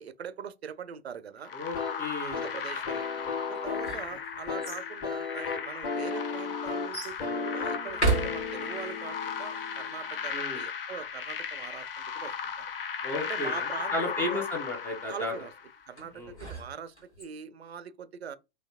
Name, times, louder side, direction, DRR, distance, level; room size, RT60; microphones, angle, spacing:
voice 1, 0.0-1.5 2.2-3.1 3.5-12.7 13.2-14.4 15.1-15.5 15.9-18.4, right 7 dB, 70° right, 0.5 m, -42 dB
sound 1, 1.4-15.8, left 6 dB, 60° left, 0.6 m, -36 dB
voice 2, 1.5-2.6 10.3-10.6 13.0-15.3 16.1-16.3, left 2 dB, 5° left, 0.4 m, -34 dB
sound 2, 1.7-10.3, left 5 dB, 25° left, 1.1 m, -36 dB
sound 3, 3.5-4.9 5.7-5.8 6.9-7.2 7.9-8.9 16.0-17.2, right 3 dB, 90° left, 1.6 m, -33 dB
4.0 x 2.7 x 2.7 m
figure-of-eight pair, 105°, 33 cm